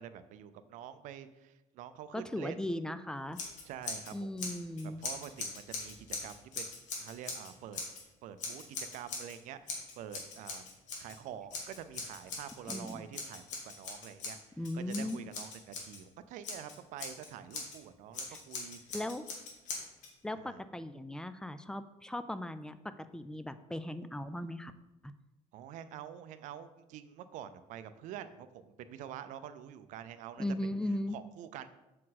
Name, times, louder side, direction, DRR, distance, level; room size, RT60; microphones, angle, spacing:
voice 1, 0.0-2.6 3.6-4.3 5.0-7.8 8.2-8.6 8.9-10.6 11.0-14.4 14.7-18.8 20.4-20.6 25.5-30.4 31.1-31.7, right 10 dB, 75° right, 12 dB, 0.5 m, -47 dB
voice 2, 2.1-3.4 4.1-5.0 12.7-13.0 14.6-15.2 18.3-18.4 18.9-19.3 20.2-24.7 25.0-25.1 30.4-31.2, left 1 dB, 5° left, 12 dB, 0.3 m, -38 dB
Scissors, 3.3-4.1 4.4-8.0 8.4-9.4 9.7-11.2 11.5-16.0 16.4-17.8 18.1-20.1, left 4 dB, 75° left, 1.6 m, -41 dB
7.3 x 4.4 x 4.1 m, 1.0 s
cardioid pair, 135°, 13 cm